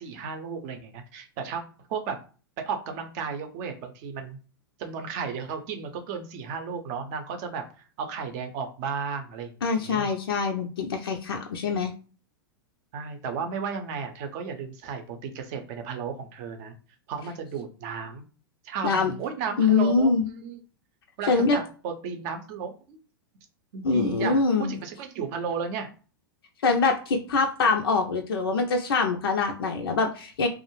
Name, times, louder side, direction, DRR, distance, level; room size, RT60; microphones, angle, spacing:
voice 1, 0.0-1.6 1.9-2.2 2.7-4.4 4.8-10.1 12.9-16.8 17.1-18.2 18.6-20.6 21.2-23.0 23.7-25.9, right 6 dB, 45° right, 5 dB, 0.6 m, -34 dB
voice 2, 9.6-11.9 18.8-19.1 19.6-20.3 21.3-21.6 23.8-24.7 26.6-30.5, left 4 dB, 70° left, 3 dB, 0.4 m, -24 dB
2.3 x 2.0 x 3.0 m, 0.37 s
figure-of-eight pair, 100°, 13 cm